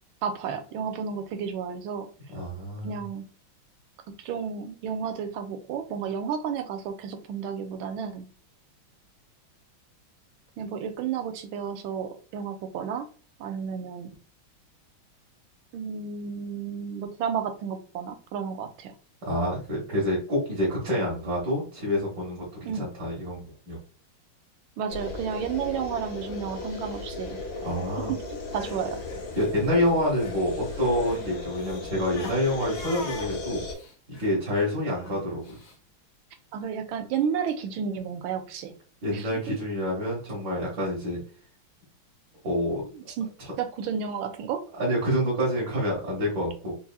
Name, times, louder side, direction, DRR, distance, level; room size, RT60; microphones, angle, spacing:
voice 1, 0.2-2.1 2.8-3.2 4.2-8.3 10.6-13.0 13.4-14.1 15.7-18.9 22.6-22.8 24.8-27.4 28.1-29.0 36.5-38.7 39.1-39.6 42.9-43.3 43.6-44.6, right 7 dB, 80° right, 6 dB, 1.4 m, -32 dB
voice 2, 2.3-3.0 19.2-23.8 27.6-28.1 29.4-33.6 34.2-35.6 39.0-41.2 42.4-42.9 44.8-46.7, equal, 55° right, -7 dB, 1.8 m, -27 dB
sound 1, 24.9-33.7, left 3 dB, 85° left, 1.9 m, -36 dB
Crying sobbing, 28.3-30.4 30.7-35.8, left 4 dB, 55° left, 1.1 m, -44 dB
4.7 x 2.7 x 2.3 m, 0.39 s
omnidirectional pair, 2.3 m